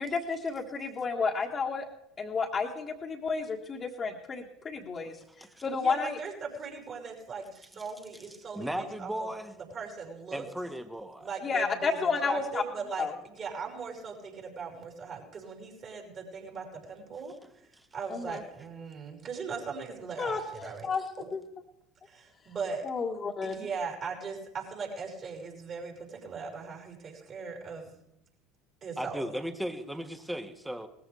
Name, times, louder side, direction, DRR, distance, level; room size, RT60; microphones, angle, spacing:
voice 1, 0.0-1.9 2.2-5.2 5.6-6.2 11.4-12.6 13.0-13.1 18.1-18.4 20.2-21.0 21.3-21.4 22.8-23.6, left 5 dB, 30° left, -3 dB, 1.8 m, -31 dB
voice 2, 5.7-9.3 9.6-10.4 11.2-17.3 17.9-21.3 22.1-22.9 23.4-27.9 28.8-29.3, right 5 dB, 40° right, -1 dB, 5.5 m, -39 dB
voice 3, 8.5-9.5 10.3-11.3 17.7-17.9 29.0-30.9, equal, 5° right, 8 dB, 1.6 m, -36 dB
19.5 x 14.5 x 3.5 m, 0.83 s
hypercardioid pair, 70°, 0 cm